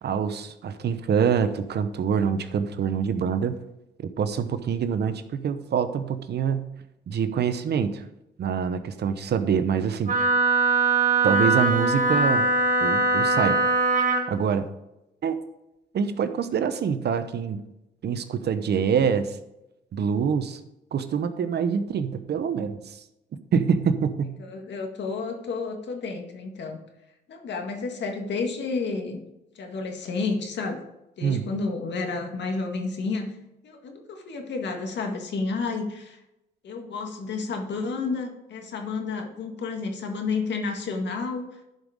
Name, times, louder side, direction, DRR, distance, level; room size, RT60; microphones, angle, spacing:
voice 1, 0.0-3.6 4.2-6.7 7.1-8.0 8.4-10.1 11.2-12.5 12.8-13.6 14.3-14.6 15.2-15.3 15.9-17.6 18.0-19.4 19.9-20.6 20.9-23.0 23.5-24.4 31.2-31.5, right 7 dB, 55° right, 11 dB, 0.9 m, -25 dB
Wind instrument woodwind instrument, 10.1-14.3, right 2 dB, 40° right, 1.6 m, -21 dB
voice 2, 24.4-26.8 27.3-29.2 29.6-30.8 31.2-33.3 33.6-36.2 36.6-41.6, left 4 dB, 65° left, 4 dB, 1.9 m, -31 dB
11.0 x 5.5 x 4.9 m, 0.91 s
cardioid pair, 90°, 20 cm